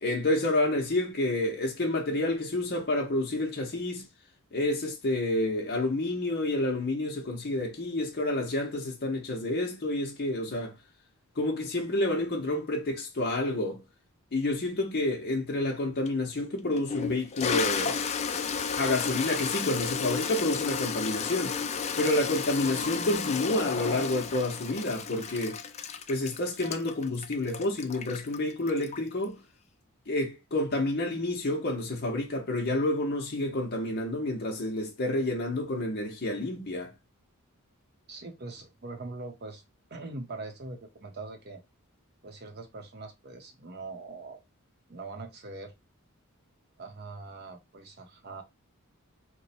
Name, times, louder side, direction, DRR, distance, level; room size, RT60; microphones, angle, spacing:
voice 1, 0.0-4.1 4.5-10.8 11.4-13.8 14.3-18.0 18.8-21.6 22.0-25.6 26.1-29.4 30.1-36.9, left 2 dB, 45° left, 0.8 m, -29 dB
Toilet flush, 16.1-16.2 16.8-29.2, left 6 dB, 30° left, 0.3 m, -32 dB
voice 2, 38.1-39.6 39.9-41.6 42.2-44.4 44.9-45.7 46.8-48.4, right 3 dB, 45° right, 0.8 m, -42 dB
3.1 x 2.1 x 4.1 m
head